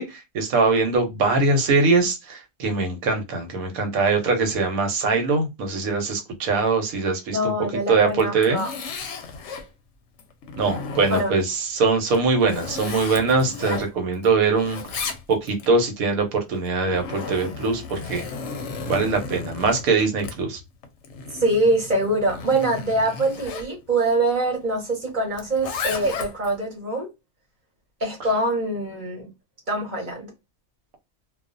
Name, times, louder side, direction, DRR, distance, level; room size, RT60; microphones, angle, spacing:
voice 1, 0.0-7.5 7.9-8.6 10.6-18.3 18.8-20.6, right 4 dB, 90° right, 1.2 m, -22 dB
voice 2, 7.3-8.7 11.1-11.3 21.4-27.1 28.0-29.3 29.7-30.3, right 1 dB, 40° right, 1.0 m, -24 dB
Zipper (clothing), 8.1-9.7 10.2-11.5 12.1-14.3 14.5-15.7 16.6-23.7 25.3-26.6, left 5 dB, 65° left, 0.8 m, -34 dB
2.4 x 2.3 x 2.4 m
omnidirectional pair, 1.4 m